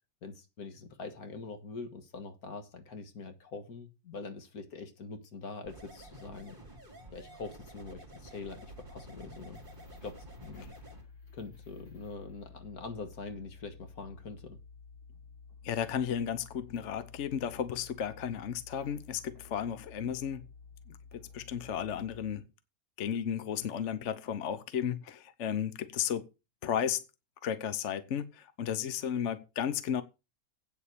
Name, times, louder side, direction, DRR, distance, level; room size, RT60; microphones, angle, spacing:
voice 1, 0.2-6.6 7.1-9.6 10.0-10.8 11.3-14.6, left 4 dB, 75° left, 2.0 m, -44 dB
sound 1, 5.6-11.0, right 2 dB, 35° right, 3.5 m, -51 dB
sound 2, 8.4-22.3, left 5 dB, 40° left, 5.9 m, -53 dB
voice 2, 15.6-20.4 20.9-22.5 23.0-26.3 26.6-27.0 27.4-30.0, left 9 dB, 55° left, 1.1 m, -34 dB
8.8 x 7.1 x 6.7 m
omnidirectional pair, 1.6 m